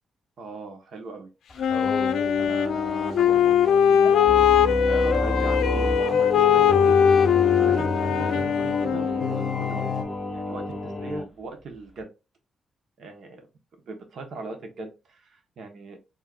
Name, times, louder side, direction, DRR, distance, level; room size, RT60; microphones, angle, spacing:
voice 1, 0.4-1.3 2.4-4.5 5.0-6.9 7.6-9.9 10.3-12.1 13.0-13.5 13.9-16.0, right 3 dB, 70° right, 5 dB, 1.2 m, -40 dB
Singing, 1.5-11.3, left 1 dB, 20° left, 2.3 m, -32 dB
Wind instrument woodwind instrument, 1.6-9.6, left 8 dB, 80° left, 0.5 m, -21 dB
sound 1, 4.3-6.1 6.7-8.5 9.2-10.0, left 3 dB, 55° left, 0.8 m, -29 dB
4.9 x 3.1 x 2.5 m, 0.28 s
cardioid pair, 110°, 0 cm